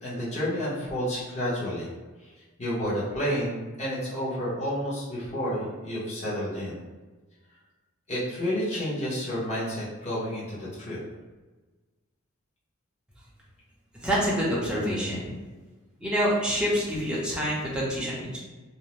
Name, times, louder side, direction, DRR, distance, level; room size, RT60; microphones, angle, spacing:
voice 1, 0.0-1.9 2.2-2.3 2.6-6.8 8.1-11.0, equal, 35° left, -8 dB, 0.9 m, -30 dB
voice 2, 13.9-15.3 16.0-18.4, equal, 5° right, -7 dB, 0.6 m, -27 dB
2.6 x 2.0 x 3.1 m, 1.3 s
head